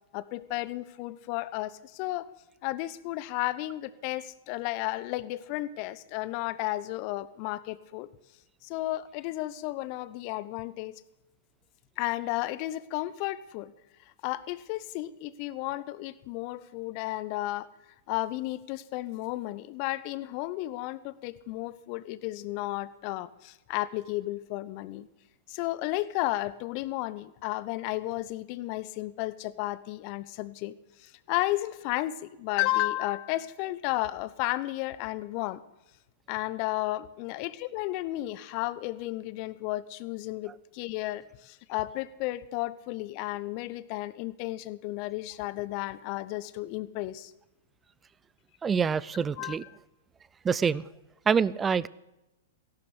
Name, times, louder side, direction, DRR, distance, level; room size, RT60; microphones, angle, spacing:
voice 1, 0.1-2.3 2.6-8.1 8.6-11.0 12.0-13.7 14.2-17.7 18.1-25.1 25.5-30.7 31.0-35.6 36.3-47.3 49.4-49.6, left 17 dB, 40° left, 17 dB, 0.8 m, -33 dB
voice 2, 48.6-49.6 50.4-50.8 51.3-51.9, right 6 dB, 15° right, 21 dB, 0.4 m, -26 dB
16.0 x 11.5 x 6.8 m, 0.96 s
figure-of-eight pair, 105°, 0 cm